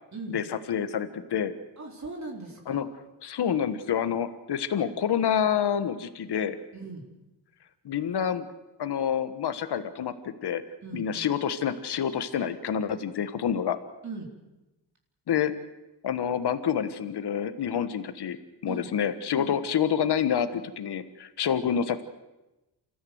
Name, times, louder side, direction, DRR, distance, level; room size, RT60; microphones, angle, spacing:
voice 1, 0.3-1.5 2.7-2.9 3.2-6.6 7.8-8.5 8.8-10.6 10.9-13.8 15.3-15.5 16.0-18.4 18.6-22.0, left 8 dB, 70° left, 10 dB, 1.4 m, -28 dB
voice 2, 1.8-2.8 6.7-7.0 10.8-11.3 14.0-14.3 18.7-18.9 19.4-19.6, right 3 dB, 40° right, 0 dB, 4.0 m, -39 dB
28.0 x 14.5 x 7.8 m, 0.99 s
cardioid pair, 95°, 41 cm